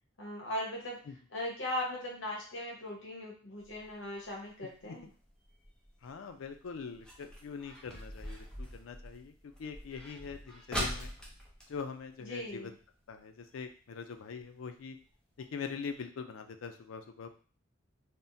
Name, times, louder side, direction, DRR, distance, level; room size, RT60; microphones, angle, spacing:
voice 1, 0.2-1.0 1.3-5.1 12.2-12.8, left 1 dB, 75° left, -2 dB, 1.1 m, -39 dB
sound 1, 3.6-12.8 13.2-13.3 13.5-13.9 14.4-14.5 15.0-15.1 15.4-15.5 15.9-16.0, equal, 5° left, 0.6 m, -43 dB
voice 2, 6.0-11.1 11.7-12.7 13.1-15.0 15.4-17.3, left 5 dB, 90° left, 7 dB, 0.4 m, -43 dB
3.5 x 2.1 x 2.7 m, 0.40 s
head